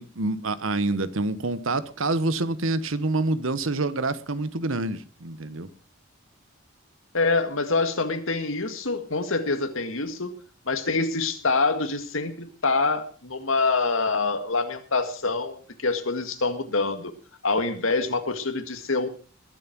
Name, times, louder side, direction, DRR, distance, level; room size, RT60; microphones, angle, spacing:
voice 1, 0.0-5.7, right 2 dB, 75° right, 1.2 m, -27 dB
voice 2, 7.1-10.4 10.7-17.1 17.4-19.1, left 3 dB, 75° left, 2.0 m, -26 dB
21.0 x 7.6 x 6.1 m
head